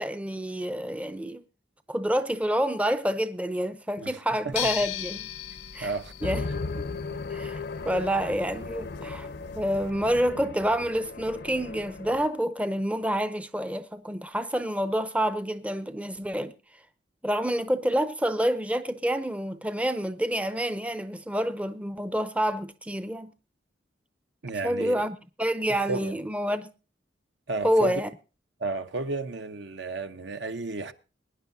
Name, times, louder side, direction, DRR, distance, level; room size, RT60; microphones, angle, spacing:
voice 1, 0.0-1.4 1.9-5.3 5.7-5.9 6.2-6.5 7.3-9.3 9.6-16.5 17.2-23.3 24.6-26.7 27.6-28.1, equal, 10° right, 0.5 m, -28 dB
sound 1, 4.5-9.9, left 10 dB, 80° left, 0.9 m, -38 dB
voice 2, 5.8-6.1 7.1-7.2 24.4-25.1 25.9-26.2 27.5-28.0 28.6-30.9, right 3 dB, 70° right, 0.9 m, -32 dB
sound 2, 6.2-12.3, left 3 dB, 60° left, 0.6 m, -36 dB
22.5 x 10.0 x 2.7 m
head